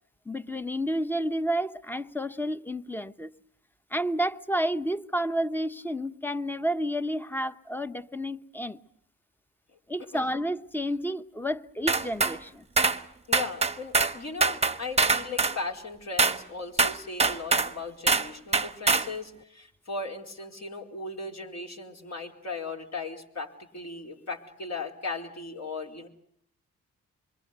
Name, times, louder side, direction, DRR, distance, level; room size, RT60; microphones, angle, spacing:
voice 1, 0.3-3.3 3.9-8.8 9.9-12.7, equal, 5° left, 1.1 m, -30 dB
sound 1, 11.9-12.4 12.8-13.0 13.3-14.2 14.4-15.6 16.2-16.4 16.8-17.7 18.1-18.3 18.5-19.1, right 4 dB, 20° right, 1.1 m, -23 dB
voice 2, 13.3-26.1, left 3 dB, 50° left, 4.6 m, -37 dB
26.5 x 23.0 x 8.2 m
cardioid pair, 60°, 34 cm